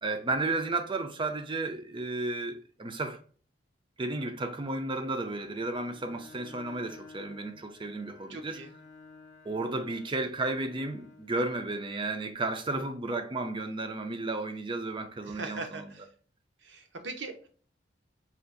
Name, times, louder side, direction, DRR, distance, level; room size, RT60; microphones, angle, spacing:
voice 1, 0.0-3.2 4.0-8.6 9.5-15.9, right 2 dB, 30° right, 0.5 m, -33 dB
Bowed string instrument, 5.3-12.4, left 3 dB, 40° left, 0.6 m, -53 dB
voice 2, 8.3-8.7 15.3-16.1 16.6-17.5, right 3 dB, 75° right, 0.8 m, -40 dB
4.5 x 2.5 x 2.5 m
head